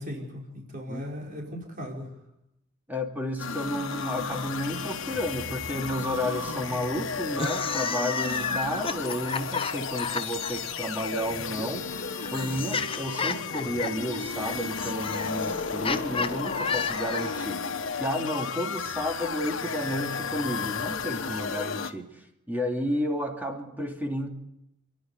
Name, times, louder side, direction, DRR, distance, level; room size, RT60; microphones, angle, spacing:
voice 1, 0.0-2.1, equal, 45° right, -1 dB, 5.0 m, -37 dB
voice 2, 2.9-11.8 12.3-17.6 18.0-22.0 22.5-24.3, left 1 dB, 10° right, 2 dB, 2.8 m, -31 dB
sound 1, 3.4-21.9, left 5 dB, 75° left, 1.4 m, -33 dB
sound 2, 7.3-10.5 11.6-17.5, left 5 dB, 30° left, 1.0 m, -32 dB
29.0 x 11.5 x 9.5 m, 0.85 s
head